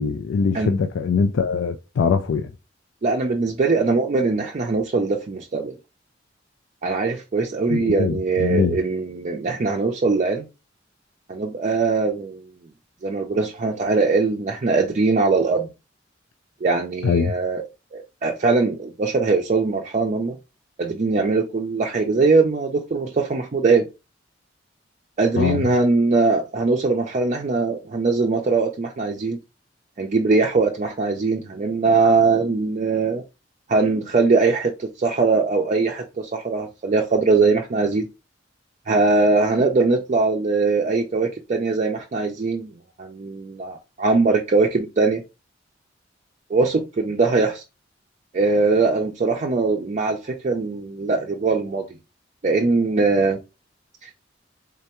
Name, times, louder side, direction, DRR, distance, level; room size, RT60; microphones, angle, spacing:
voice 1, 0.0-2.5 7.7-8.8 17.0-17.3 25.4-25.6, left 5 dB, 85° left, 0.4 m, -22 dB
voice 2, 3.0-5.7 6.8-10.5 11.3-12.4 13.0-15.7 16.6-17.6 17.9-20.4 20.8-23.9 25.2-29.4 30.0-33.2 33.7-38.0 38.9-42.7 43.0-45.2 46.5-47.6 48.3-51.9 52.4-53.4 54.0-54.1, right 3 dB, 40° right, 0.4 m, -21 dB
3.7 x 3.3 x 2.9 m
head